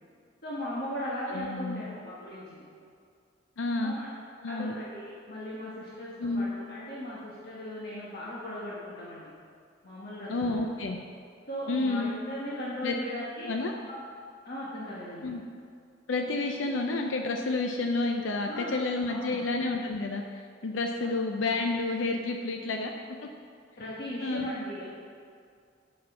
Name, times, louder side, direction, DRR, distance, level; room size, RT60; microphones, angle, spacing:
voice 1, 0.4-2.6 3.8-4.1 4.5-9.3 9.8-10.6 11.5-13.5 13.9-14.0 14.4-15.3 18.4-18.7 19.0-19.4 21.0-21.1 23.8-24.9, equal, 55° left, -7 dB, 1.4 m, -38 dB
voice 2, 1.3-1.9 3.6-3.9 4.4-4.7 6.2-6.5 10.3-11.0 11.7-12.1 12.8-13.0 13.4-13.7 15.2-15.4 16.1-22.9 24.2-24.5, left 3 dB, 80° left, 3 dB, 0.6 m, -30 dB
7.4 x 6.0 x 5.8 m, 2.3 s
head